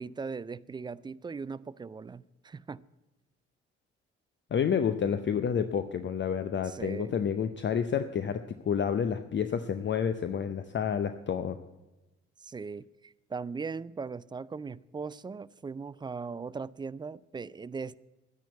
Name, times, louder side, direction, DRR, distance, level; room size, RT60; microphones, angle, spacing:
voice 1, 0.0-2.8 6.7-7.2 12.4-18.0, right 5 dB, 15° right, 0.3 m, -39 dB
voice 2, 4.5-11.6, left 7 dB, 35° left, 0.7 m, -29 dB
11.0 x 10.0 x 8.0 m
figure-of-eight pair, 45°, 34 cm